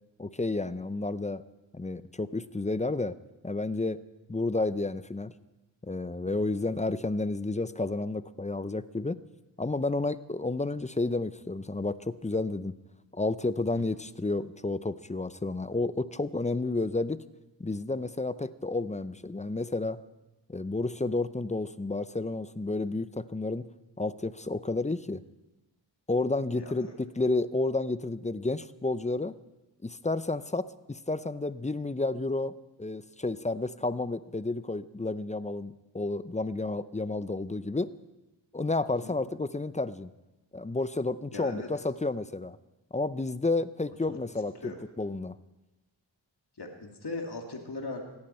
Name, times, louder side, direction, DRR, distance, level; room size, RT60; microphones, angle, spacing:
voice 1, 0.2-1.4 1.7-3.2 3.4-4.0 4.3-5.3 5.8-9.2 9.6-12.7 13.1-17.2 17.6-20.0 20.5-23.7 24.0-25.2 26.1-29.3 29.8-32.5 32.8-37.9 38.5-40.1 40.5-42.6 42.9-45.3, left 2 dB, 15° left, 15 dB, 0.6 m, -31 dB
voice 2, 41.3-41.7 44.1-44.2 44.6-44.8 46.6-48.0, left 3 dB, 55° left, 2 dB, 2.4 m, -38 dB
19.5 x 14.5 x 4.4 m, 1.0 s
cardioid pair, 55°, 46 cm